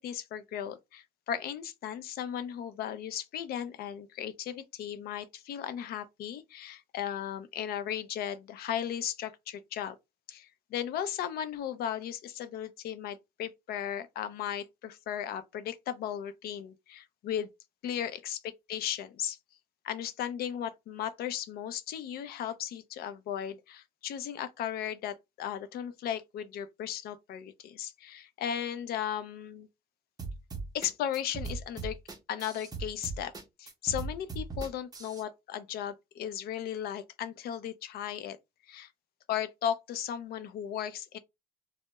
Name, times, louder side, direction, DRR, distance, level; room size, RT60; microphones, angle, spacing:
voice 1, 0.0-10.0 10.3-17.5 17.8-18.4 18.7-19.4 19.8-29.7 30.7-32.0 32.3-33.3 33.6-38.4 38.7-38.9 39.3-41.2, left 9 dB, 65° left, 0.5 m, -36 dB
sound 1, 30.2-35.2, right 4 dB, 25° right, 0.6 m, -38 dB
2.2 x 2.0 x 2.8 m
cardioid pair, 110°, 17 cm